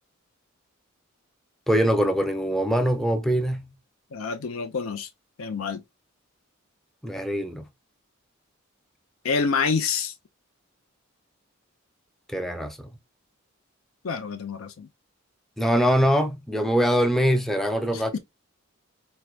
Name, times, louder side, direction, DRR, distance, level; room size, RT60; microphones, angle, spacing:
voice 1, 1.7-3.7 7.0-7.7 12.3-12.9 15.6-18.2, equal, ahead, 0.4 m, -23 dB
voice 2, 4.1-5.1 5.4-5.8 9.2-10.1 14.0-14.9 17.9-18.2, left 5 dB, 80° left, 0.5 m, -27 dB
4.5 x 2.1 x 2.2 m
head